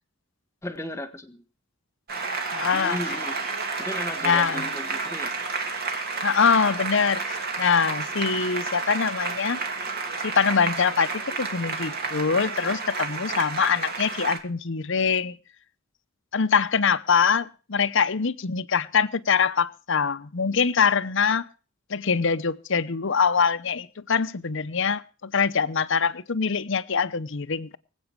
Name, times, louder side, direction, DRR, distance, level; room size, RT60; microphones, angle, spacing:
voice 1, 0.6-1.4 2.7-3.4 3.8-5.3, left 1 dB, 15° left, 1.7 m, -35 dB
Applause, 2.1-14.4, right 4 dB, 50° right, 2.9 m, -31 dB
voice 2, 2.5-3.0 4.2-4.7 6.2-9.6 10.2-15.4 16.3-21.4 21.9-27.8, left 6 dB, 65° left, 0.9 m, -24 dB
24.5 x 8.6 x 4.7 m
head